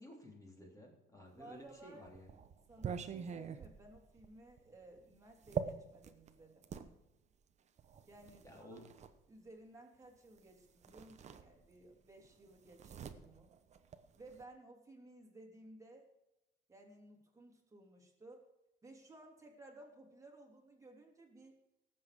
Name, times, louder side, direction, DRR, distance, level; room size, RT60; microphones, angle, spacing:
voice 1, 0.0-2.3 8.4-8.8, left 1 dB, 15° left, 0 dB, 3.4 m, -54 dB
voice 2, 1.4-2.1 2.7-6.7 8.1-8.8 9.3-13.5 14.2-16.1 16.7-18.5 18.8-21.5, right 2 dB, 15° right, 1 dB, 2.9 m, -57 dB
sound 1, 1.6-6.9 7.8-9.1 10.4-10.5 10.8-11.9 12.2-14.4, right 7 dB, 35° right, 1.0 m, -45 dB
18.0 x 7.7 x 4.9 m, 0.96 s
cardioid pair, 140°, 21 cm